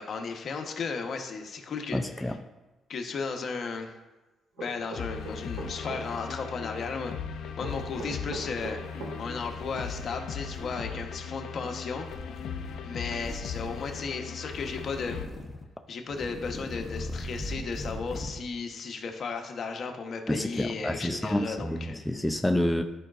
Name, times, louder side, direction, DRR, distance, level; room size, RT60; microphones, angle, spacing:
voice 1, 0.0-2.0 2.9-3.9 4.6-7.1 7.6-8.8 9.2-12.4 12.8-15.2 15.9-22.0, left 4 dB, 55° left, 4 dB, 0.9 m, -35 dB
voice 2, 1.9-2.4 20.3-22.8, left 1 dB, 5° left, 5 dB, 0.4 m, -28 dB
sound 1, 4.6-6.0 7.6-9.2, right 3 dB, 90° right, 1.6 m, -39 dB
sound 2, 4.8-4.9 5.2-6.4 6.7-7.2 7.6-8.2 8.6-10.2 10.5-11.0 12.0-12.8 13.2-14.1 14.5-15.7 16.1-18.4, left 1 dB, 25° left, 0.9 m, -41 dB
sound 3, 5.0-15.3, left 6 dB, 80° left, 0.5 m, -38 dB
11.0 x 4.9 x 2.5 m, 1.1 s
cardioid pair, 90°, 0 cm